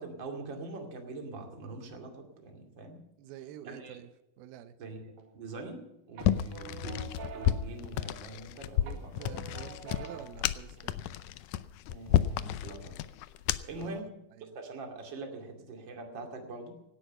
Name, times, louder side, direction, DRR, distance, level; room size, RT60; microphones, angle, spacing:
voice 1, 0.0-3.0 3.6-4.0 4.8-7.1 7.3-9.1 10.8-10.9 11.9-13.0 13.6-14.1 14.5-16.7, right 3 dB, 35° right, 2.7 m, -43 dB
voice 2, 3.2-4.1 4.4-4.8 8.8-11.0 13.8-14.6, right 11 dB, 90° right, 2.8 m, -48 dB
sound 1, 5.2-5.8 6.2-8.5 8.9-10.5, right 6 dB, 70° right, 3.8 m, -47 dB
sound 2, 6.2-13.9, left 12 dB, 80° left, 1.8 m, -31 dB
17.0 x 12.0 x 5.5 m
omnidirectional pair, 4.2 m